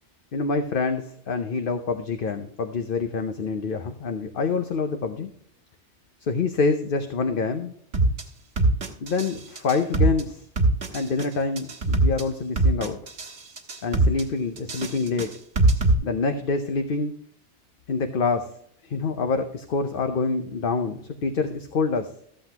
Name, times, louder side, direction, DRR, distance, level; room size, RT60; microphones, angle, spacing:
voice 1, 0.3-5.3 6.2-7.7 9.0-10.4 10.9-13.0 13.8-15.3 16.0-17.1 17.9-18.5 18.8-22.1, left 4 dB, 55° left, 7 dB, 0.9 m, -26 dB
sound 1, 7.9-8.2 8.6-9.3 9.6-10.2 10.6-11.2 11.6-12.2 12.6-13.3 13.6-14.2 14.6-15.9, right 2 dB, 75° right, 1.7 m, -21 dB
14.0 x 7.7 x 2.9 m, 0.68 s
omnidirectional pair, 1.2 m